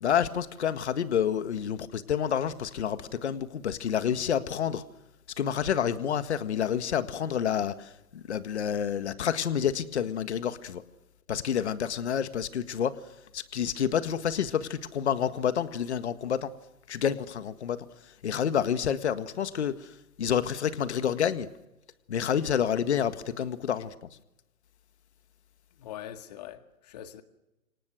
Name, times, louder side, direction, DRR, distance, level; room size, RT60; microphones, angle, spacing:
voice 1, 0.0-4.8 5.4-10.8 11.3-13.0 13.3-16.5 16.9-17.9 18.2-19.9 20.2-21.5 22.1-23.9, left 8 dB, 55° left, 1.8 m, -29 dB
voice 2, 25.8-27.2, left 11 dB, 30° left, 1.9 m, -43 dB
30.0 x 27.5 x 6.4 m
hypercardioid pair, 160°, 41 cm